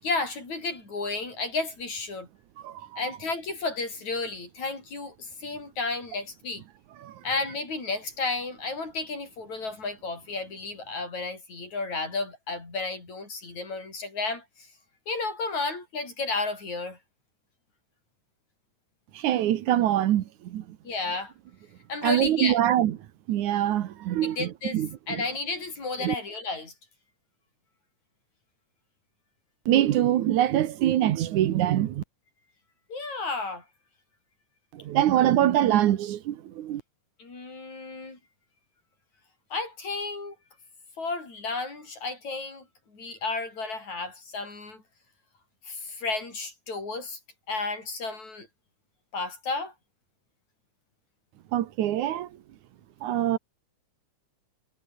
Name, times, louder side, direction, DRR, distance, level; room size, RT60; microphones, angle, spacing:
voice 1, 0.0-2.3 3.0-6.6 7.2-14.7 15.1-17.0 20.8-21.3 21.9-22.6 24.2-24.8 25.1-26.7 32.9-33.6 37.2-38.2 39.5-40.4 41.0-42.6 42.9-44.8 45.6-47.2 47.5-48.5 49.1-49.7, left 3 dB, 65° left, 8.7 m, -32 dB
voice 2, 2.6-3.0 7.0-7.2 19.1-20.8 22.0-23.0 23.3-25.2 26.0-26.1 29.7-32.0 34.7-36.8 51.5-52.3 53.0-53.4, right 12 dB, 75° right, 2.5 m, -24 dB
omnidirectional pair, 3.6 m